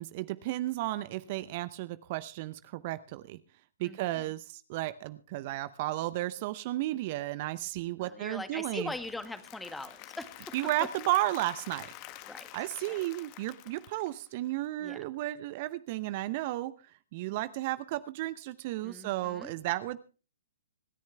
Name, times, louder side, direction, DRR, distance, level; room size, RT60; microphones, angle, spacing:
voice 1, 0.0-3.4 3.8-8.9 10.5-11.9 12.5-16.7 17.1-20.0, right 16 dB, 45° right, 15 dB, 0.7 m, -33 dB
voice 2, 3.8-4.3 8.0-10.3 12.3-12.5 12.9-13.0 14.8-15.0 18.8-19.5, left 2 dB, 5° left, 11 dB, 1.8 m, -41 dB
Applause / Crowd, 8.6-14.7, left 15 dB, 35° left, 1.5 m, -48 dB
26.0 x 10.5 x 3.4 m, 0.36 s
figure-of-eight pair, 120°, 0 cm